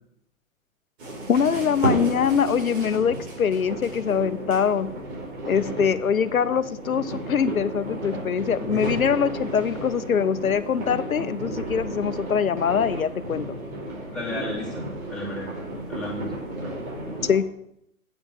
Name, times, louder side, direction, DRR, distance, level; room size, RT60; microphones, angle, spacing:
sound 1, 1.0-17.4, right 1 dB, 50° right, 4.6 m, -33 dB
voice 1, 1.3-4.9 5.5-13.5 17.2-17.4, left 7 dB, 80° left, 15 dB, 0.8 m, -23 dB
voice 2, 8.7-9.1 14.1-16.3, left 2 dB, ahead, -7 dB, 3.6 m, -34 dB
8.5 x 7.1 x 6.7 m, 0.76 s
figure-of-eight pair, 120°, 41 cm